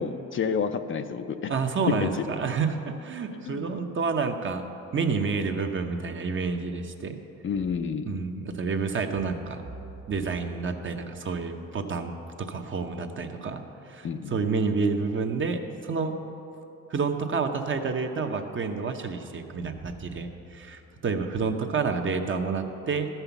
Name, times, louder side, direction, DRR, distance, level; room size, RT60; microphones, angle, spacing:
voice 1, 0.0-1.5 1.9-2.3 3.5-3.8 7.4-8.2 14.0-14.3, left 6 dB, 40° left, 9 dB, 0.5 m, -29 dB
voice 2, 1.5-4.7 4.9-7.2 8.0-9.6 10.1-16.2 16.9-23.1, right 4 dB, 40° right, 5 dB, 0.9 m, -29 dB
12.5 x 5.7 x 7.0 m, 3.0 s
cardioid pair, 90°, 30 cm